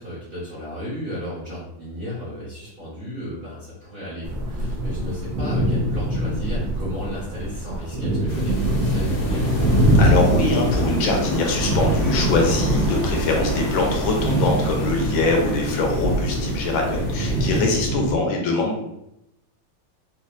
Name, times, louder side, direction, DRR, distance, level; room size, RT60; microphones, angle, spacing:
voice 1, 0.0-9.7, equal, 40° right, -9 dB, 0.9 m, -34 dB
sound 1, 4.2-18.2, right 1 dB, 75° right, 1.3 m, -24 dB
sound 2, 8.3-17.7, equal, 55° left, 0.9 m, -27 dB
voice 2, 10.0-18.8, left 3 dB, 85° left, 1 dB, 1.5 m, -23 dB
4.4 x 2.3 x 2.5 m, 0.84 s
omnidirectional pair, 2.2 m